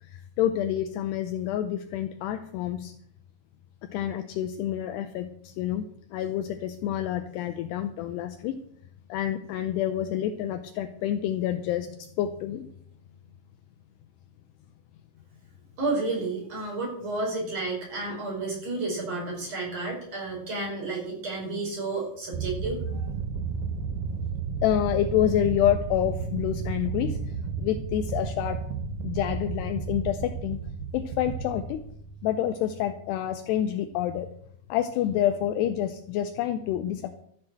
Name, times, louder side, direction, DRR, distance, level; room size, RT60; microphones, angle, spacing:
voice 1, 0.0-2.9 3.8-5.8 6.1-8.6 9.1-12.7 24.6-28.6 29.0-30.6 30.9-31.8 32.2-34.3 34.7-37.2, left 11 dB, 80° left, 8 dB, 2.6 m, -28 dB
voice 2, 15.8-23.1, right 3 dB, 35° right, -2 dB, 6.0 m, -31 dB
sound 1, 22.3-32.4, right 5 dB, 70° right, 2.1 m, -33 dB
13.5 x 7.6 x 7.6 m, 0.67 s
omnidirectional pair, 5.1 m